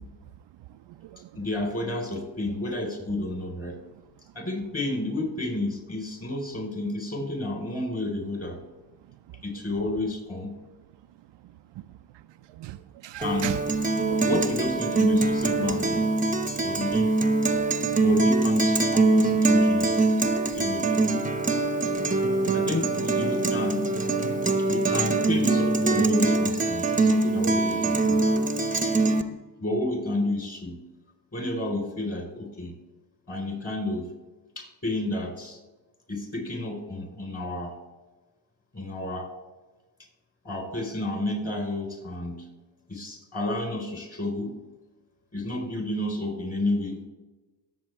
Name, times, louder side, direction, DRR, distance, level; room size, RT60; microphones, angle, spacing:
voice 1, 1.3-3.8 4.3-8.6 9.4-10.5 13.2-13.6 14.2-16.1 16.6-17.2 17.9-20.0 20.5-20.9 22.5-23.9 24.7-28.2 29.6-30.8 31.3-32.8 33.3-34.1 34.6-35.6 36.1-37.8 38.7-39.3 40.4-42.4 42.9-44.6 45.3-47.0, left 1 dB, 30° left, 3 dB, 4.6 m, -31 dB
voice 2, 12.5-13.6 14.1-14.2 16.4-16.5 17.6-18.0, right 15 dB, 60° right, 10 dB, 0.6 m, -38 dB
Guitar, 13.2-29.2, right 3 dB, 15° right, 1.1 m, -23 dB
18.5 x 7.5 x 3.6 m, 1.2 s
supercardioid pair, 60°, 50 cm